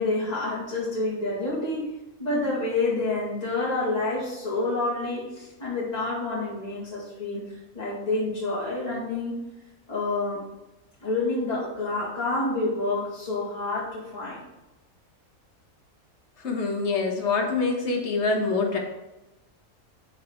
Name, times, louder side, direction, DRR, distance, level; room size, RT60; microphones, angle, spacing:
voice 1, 0.0-1.8 2.2-7.5 7.7-9.3 9.9-10.4 11.0-14.4, left 2 dB, 30° left, -6 dB, 2.2 m, -28 dB
voice 2, 16.4-18.8, left 4 dB, 50° left, 1 dB, 1.5 m, -25 dB
6.7 x 5.0 x 4.4 m, 0.99 s
omnidirectional pair, 1.5 m